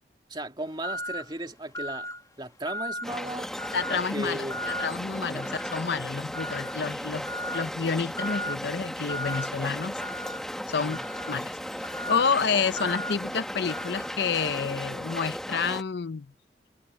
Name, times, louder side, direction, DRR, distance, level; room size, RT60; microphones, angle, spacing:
voice 1, 0.3-2.1 2.4-3.5 3.9-4.6 5.3-5.5 10.7-11.0, right 1 dB, 25° right, 2.5 m, -36 dB
sound 1, 0.8-1.3 1.7-2.2 2.7-3.1 3.6-4.0 4.5-4.9 5.4-5.9 6.3-6.8 7.3-7.7 8.2-8.6 9.1-9.5 10.0-14.2, equal, 20° left, 1.6 m, -36 dB
sound 2, 3.0-15.8, equal, 5° left, 1.4 m, -36 dB
voice 2, 3.7-7.3 7.5-9.9 10.7-11.0 11.3-11.6 11.8-16.3, left 5 dB, 65° left, 0.6 m, -29 dB
head